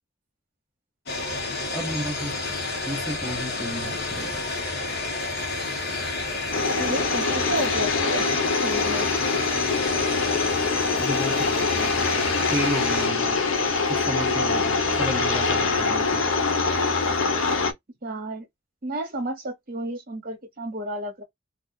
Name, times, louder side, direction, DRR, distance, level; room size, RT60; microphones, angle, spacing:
sound 1, 1.1-13.1, left 3 dB, 55° left, 1.1 m, -30 dB
voice 1, 1.7-2.4 2.9-4.5 11.0-12.1 12.5-13.4 13.9-16.2, equal, 10° right, 0.6 m, -32 dB
sound 2, 6.5-17.7, left 4 dB, 70° left, 0.7 m, -24 dB
voice 2, 6.8-9.1 18.0-18.4 18.8-21.2, right 1 dB, 45° right, 1.0 m, -32 dB
2.5 x 2.3 x 3.6 m
head